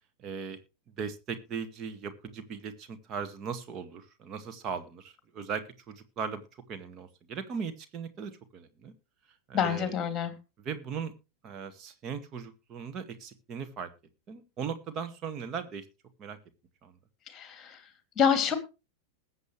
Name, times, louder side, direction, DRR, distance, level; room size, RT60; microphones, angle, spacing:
voice 1, 0.2-0.6 1.0-8.9 9.5-10.0 10.6-11.1 11.4-13.9 14.3-15.8 16.2-16.4 16.8-17.0, right 6 dB, 30° right, 9 dB, 1.9 m, -38 dB
voice 2, 9.5-10.3 17.3-17.7 18.2-18.6, left 7 dB, 25° left, 9 dB, 2.6 m, -26 dB
20.5 x 7.8 x 3.2 m, 0.29 s
figure-of-eight pair, 90°, 0 cm